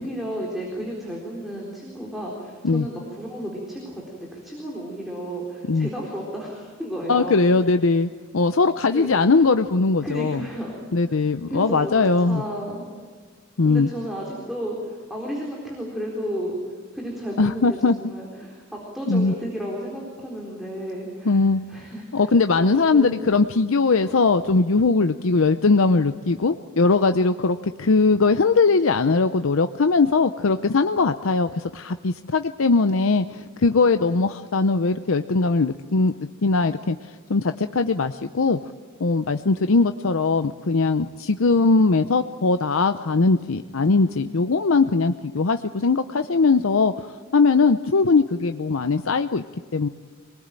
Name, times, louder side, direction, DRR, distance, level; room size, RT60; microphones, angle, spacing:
voice 1, 0.0-7.4 8.9-9.2 10.0-10.8 11.5-12.9 13.6-16.6 16.9-21.4 21.7-23.4 24.0-24.2, equal, ahead, -3 dB, 4.0 m, -33 dB
voice 2, 7.1-10.4 10.9-12.4 13.6-13.9 17.4-18.0 19.1-19.3 21.3-21.6 22.1-38.6 39.0-49.4 49.7-49.9, left 4 dB, 75° left, 9 dB, 0.7 m, -20 dB
25.5 x 19.5 x 9.0 m, 1.6 s
head